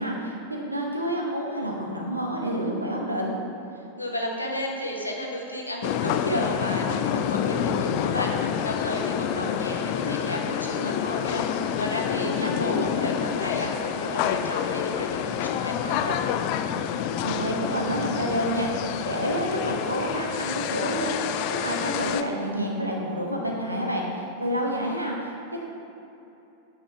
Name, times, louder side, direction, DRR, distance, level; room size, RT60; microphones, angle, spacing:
voice 1, 0.0-3.4 12.2-12.5 17.2-18.7 19.0-25.6, equal, 85° right, -1 dB, 1.2 m, -29 dB
voice 2, 4.0-16.2, equal, 85° left, 0 dB, 1.2 m, -32 dB
sound 1, 5.8-22.2, left 9 dB, 45° left, 0.4 m, -28 dB
8.8 x 5.5 x 4.7 m, 3.0 s
figure-of-eight pair, 90°, 0 cm